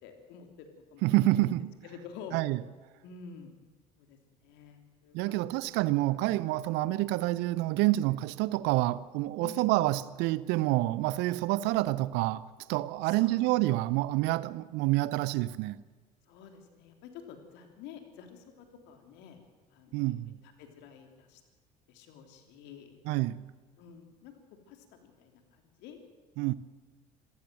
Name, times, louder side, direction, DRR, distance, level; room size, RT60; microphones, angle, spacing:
voice 1, 0.0-1.1 1.4-1.5 1.8-2.4 3.0-3.5 4.0-5.7 9.4-9.7 13.0-13.5 16.3-19.4 19.7-20.1 20.6-21.4 21.9-23.0 23.8-24.3 24.7-26.0, left 7 dB, 60° left, 3.3 m, -49 dB
voice 2, 1.0-1.7 2.3-2.6 5.1-15.8 19.9-20.3 23.1-23.4 26.4-26.5, right 17 dB, 60° right, 0.8 m, -28 dB
26.5 x 15.0 x 7.8 m
figure-of-eight pair, 60°, 20 cm